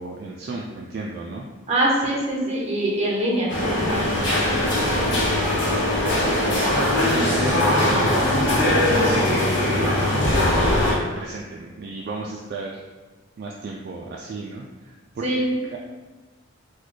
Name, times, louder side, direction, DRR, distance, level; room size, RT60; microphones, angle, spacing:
voice 1, 0.0-1.4 4.3-5.2 5.5-8.3 8.6-10.5 10.9-12.8 13.4-15.4 15.7-15.8, right 3 dB, 50° right, -1 dB, 0.3 m, -33 dB
voice 2, 1.7-3.5 3.8-4.0 15.2-15.5, right 1 dB, 35° right, -3 dB, 0.8 m, -23 dB
sound 1, 3.5-10.9, left 1 dB, 65° left, 0.8 m, -21 dB
4.0 x 2.2 x 3.1 m, 1.3 s
head